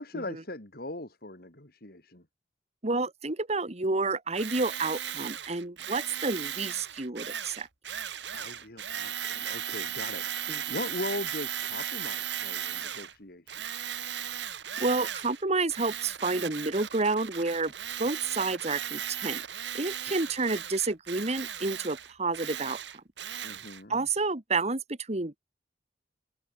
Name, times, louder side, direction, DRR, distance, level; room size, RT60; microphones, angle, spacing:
voice 1, 0.0-2.2 8.3-13.6 23.4-23.9, left 2 dB, 60° left, 4.8 m, -40 dB
voice 2, 2.8-7.7 10.5-10.8 14.8-17.7 18.0-19.4 19.7-22.8 23.9-25.4, right 3 dB, 40° right, 1.9 m, -30 dB
Tools, 4.3-13.1 13.5-15.4 15.7-23.8, right 9 dB, 90° right, 2.4 m, -36 dB
head